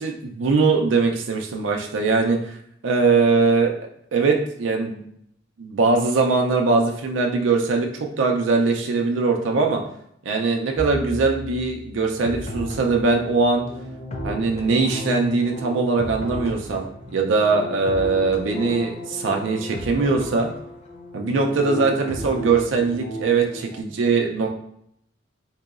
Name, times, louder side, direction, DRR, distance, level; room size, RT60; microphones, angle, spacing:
voice 1, 0.0-2.6 2.8-3.7 4.1-5.0 5.6-9.8 10.2-13.6 14.2-16.9 17.1-20.5 21.1-24.5, right 4 dB, 75° right, 2 dB, 0.4 m, -21 dB
Bowed string instrument, 10.8-15.1, right 2 dB, 15° left, 1.5 m, -39 dB
sound 1, 12.0-23.8, equal, 35° left, 0.4 m, -34 dB
3.8 x 2.7 x 2.4 m, 0.71 s
head